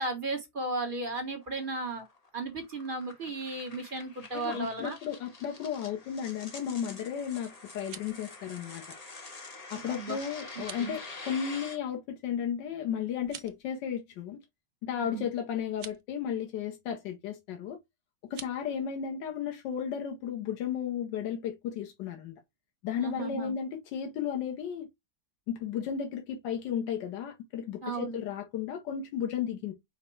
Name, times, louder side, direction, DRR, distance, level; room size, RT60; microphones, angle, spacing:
voice 1, 0.0-2.0 2.3-5.0 9.7-10.1 10.8-10.9 15.0-15.2 23.0-23.5 27.8-28.2, right 2 dB, 35° right, 1.0 m, -35 dB
sound 1, 1.0-11.8, left 3 dB, 30° left, 0.8 m, -47 dB
voice 2, 4.3-8.9 9.7-14.4 14.8-17.8 18.3-22.3 22.8-24.9 25.5-29.7, left 8 dB, 90° left, 1.5 m, -34 dB
sound 2, 7.6-8.2 10.5-10.9 13.2-13.6 15.7-16.0 18.2-18.6, right 10 dB, 65° right, 0.8 m, -46 dB
5.1 x 2.1 x 4.4 m
omnidirectional pair, 1.9 m